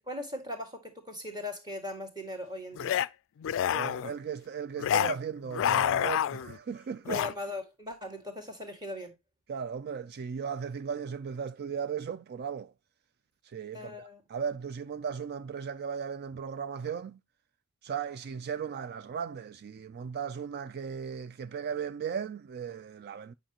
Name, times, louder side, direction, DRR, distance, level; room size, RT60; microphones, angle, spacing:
voice 1, 0.1-3.0 7.1-9.2 13.7-14.2, left 1 dB, 20° right, 1.9 m, -39 dB
sound 1, 2.8-3.1 3.4-4.1 4.8-5.2 5.5-6.6 7.1-7.3, left 10 dB, 60° left, 0.3 m, -28 dB
voice 2, 3.7-7.2 9.5-12.7 13.5-17.2 17.8-23.3, right 7 dB, 45° right, 0.4 m, -36 dB
8.8 x 5.1 x 2.9 m
head